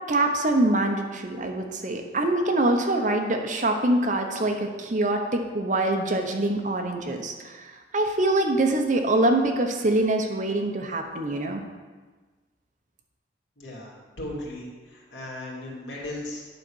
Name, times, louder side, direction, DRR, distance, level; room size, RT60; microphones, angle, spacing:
voice 1, 0.1-7.6 7.9-11.6, right 2 dB, 45° right, 3 dB, 0.9 m, -24 dB
voice 2, 13.6-16.5, left 1 dB, 80° left, -4 dB, 2.4 m, -37 dB
9.1 x 3.9 x 6.3 m, 1.3 s
head